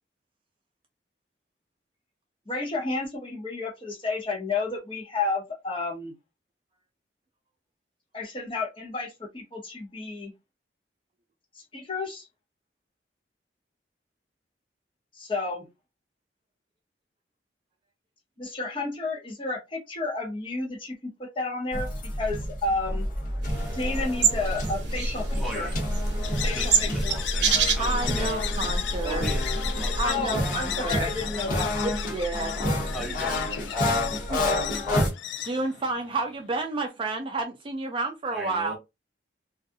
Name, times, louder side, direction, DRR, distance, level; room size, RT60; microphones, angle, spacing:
voice 1, 2.5-6.1 8.1-10.3 11.7-12.3 15.1-15.7 18.4-21.9 22.2-23.1 23.7-25.7 26.4-27.2 30.0-31.7, left 3 dB, 30° left, 0.7 m, -31 dB
sound 1, 21.7-35.1, left 1 dB, 50° left, 1.1 m, -30 dB
sound 2, 23.4-30.1, right 4 dB, 80° right, 0.6 m, -27 dB
voice 2, 25.4-25.8 26.5-27.5 27.7-28.4 29.0-29.5 29.8-30.0 32.9-33.7 38.3-38.8, right 1 dB, ahead, 0.9 m, -38 dB
sound 3, 26.2-36.4, left 11 dB, 85° left, 0.3 m, -36 dB
voice 3, 27.8-29.2 30.0-31.1 31.8-33.2 34.3-34.5 35.4-38.8, right 3 dB, 30° right, 0.4 m, -30 dB
2.5 x 2.3 x 2.6 m
head